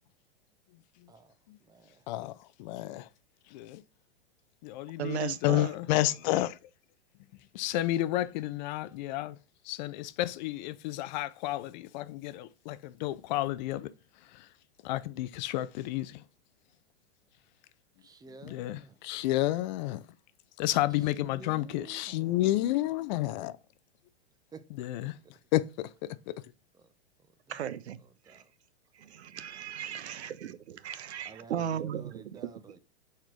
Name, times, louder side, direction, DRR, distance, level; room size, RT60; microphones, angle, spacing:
voice 1, 1.6-2.0 18.0-19.0 20.9-22.5 24.5-24.9 26.7-26.9 27.5-27.7 28.0-28.5 29.8-30.2 30.9-31.0 31.2-32.8, right 5 dB, 10° right, 0.8 m, -52 dB
voice 2, 2.6-3.1 3.5-3.8 4.6-6.6 7.5-9.4 9.7-13.9 14.3-14.5 14.8-16.2 18.4-20.0 20.6-23.5 24.7-25.1 25.5-25.9 26.3-26.4, left 16 dB, 45° left, 0.5 m, -31 dB
voice 3, 5.0-5.7 27.5-28.0 28.3-28.4 29.0-32.4, right 9 dB, 80° right, 0.7 m, -36 dB
5.8 x 4.4 x 4.5 m
hypercardioid pair, 115°, 33 cm